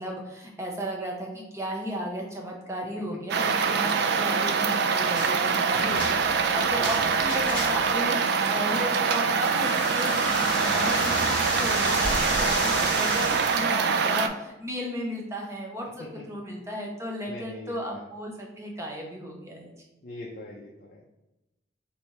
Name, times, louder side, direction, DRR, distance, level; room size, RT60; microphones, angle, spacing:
voice 1, 0.0-6.2 6.5-15.9 16.1-19.7, equal, 15° right, 0 dB, 0.6 m, -35 dB
sound 1, 3.3-14.3, right 5 dB, 55° right, 0.3 m, -24 dB
sound 2, 5.2-5.4 5.7-8.0 9.4-13.6, left 1 dB, 5° left, 1.1 m, -32 dB
voice 2, 6.8-7.1 17.3-18.0 20.0-21.0, left 1 dB, 45° left, -2 dB, 0.5 m, -42 dB
Explosion, 11.9-13.0, equal, 85° right, 0.8 m, -35 dB
3.2 x 2.7 x 4.5 m, 0.98 s
head